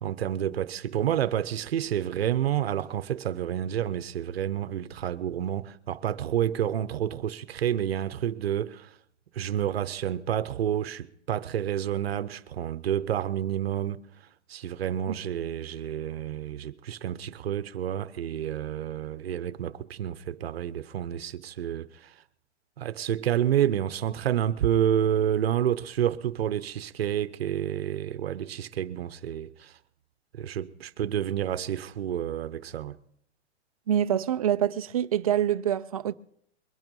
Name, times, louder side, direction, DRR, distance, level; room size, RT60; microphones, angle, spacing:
voice 1, 0.0-9.0 9.3-22.2 22.8-29.8 30.3-33.0, right 10 dB, 65° right, 0.9 m, -29 dB
voice 2, 33.9-36.1, right 10 dB, 35° right, 0.5 m, -25 dB
22.0 x 9.1 x 5.4 m
hypercardioid pair, 170°, 34 cm